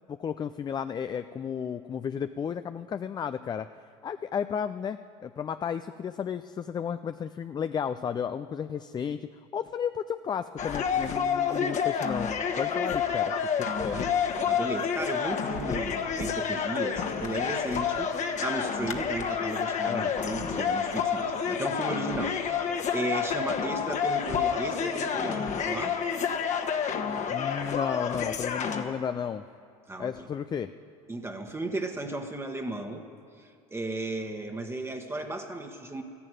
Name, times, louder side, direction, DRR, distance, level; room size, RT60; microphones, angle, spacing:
voice 1, 0.1-3.7 4.0-12.3 12.6-13.3 13.6-14.0 17.3-17.5 19.9-20.1 27.3-29.4 30.0-30.7, left 7 dB, 20° left, 11 dB, 0.4 m, -33 dB
sound 1, 10.6-28.8, left 7 dB, 40° left, 1.4 m, -29 dB
voice 2, 14.4-18.1 18.4-26.0 29.9-30.3 31.1-33.0 33.4-36.0, right 2 dB, 15° right, 4 dB, 1.3 m, -35 dB
14.0 x 11.0 x 9.1 m, 2.4 s
hypercardioid pair, 80°, 19 cm